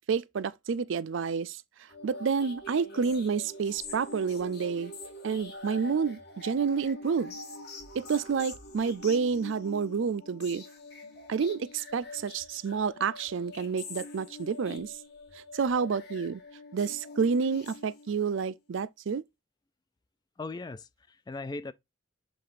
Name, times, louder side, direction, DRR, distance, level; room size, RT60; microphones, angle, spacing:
voice 1, 0.1-1.6 2.0-4.9 5.2-7.3 7.9-10.6 11.3-14.9 15.5-16.4 16.7-19.2, right 5 dB, 75° right, 0.4 m, -29 dB
sound 1, 1.9-18.3, left 2 dB, 55° left, 2.1 m, -45 dB
voice 2, 20.4-21.7, left 3 dB, 20° left, 0.3 m, -38 dB
7.6 x 2.6 x 4.9 m
head